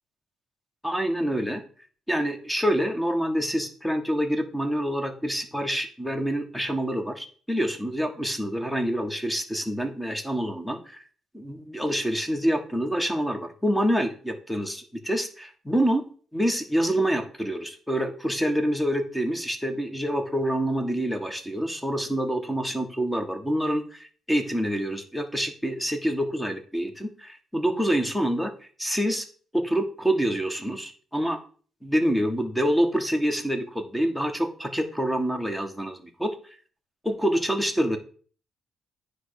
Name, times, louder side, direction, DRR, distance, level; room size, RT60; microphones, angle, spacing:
voice 1, 0.8-1.6 2.1-11.0 11.3-16.0 16.3-28.5 28.8-29.3 29.5-31.4 31.8-36.5 37.0-38.0, equal, 5° left, 6 dB, 1.5 m, -27 dB
9.5 x 3.3 x 6.4 m, 0.42 s
cardioid pair, 90°, 0 cm